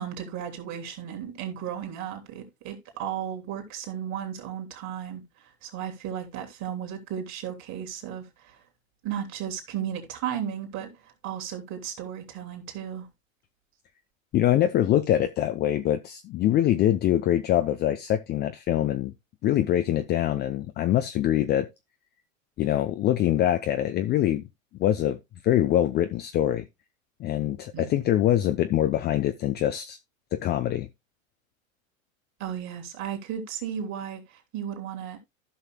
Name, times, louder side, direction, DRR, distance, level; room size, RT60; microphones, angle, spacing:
voice 1, 0.0-8.6 9.0-13.1 27.7-28.0 32.4-35.2, right 9 dB, 45° right, 3.2 m, -35 dB
voice 2, 14.3-19.1 19.4-21.7 22.6-24.5 24.8-25.2 25.4-26.7 27.2-30.0 30.3-30.9, left 12 dB, 25° left, 0.5 m, -24 dB
15.0 x 5.6 x 2.2 m
hypercardioid pair, 105°, 40 cm